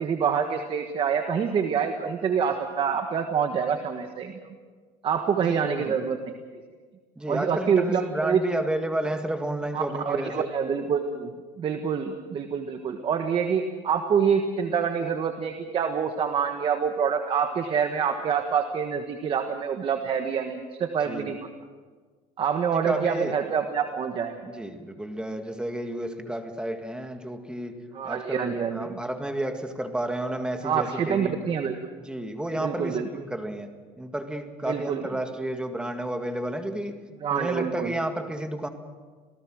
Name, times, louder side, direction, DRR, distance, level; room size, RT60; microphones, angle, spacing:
voice 1, 0.0-4.3 5.0-6.3 7.3-8.4 9.7-21.4 22.4-24.5 27.9-29.0 30.6-31.9 32.6-33.1 34.7-35.0 37.2-37.9, right 7 dB, 35° right, 6 dB, 1.5 m, -26 dB
voice 2, 5.4-5.9 7.2-10.5 21.0-21.3 22.7-23.4 24.5-27.8 28.0-31.4 32.0-33.7 34.0-37.0 37.3-38.7, right 1 dB, 5° right, 6 dB, 1.9 m, -31 dB
27.0 x 17.5 x 6.4 m, 1.5 s
cardioid pair, 140°, 16 cm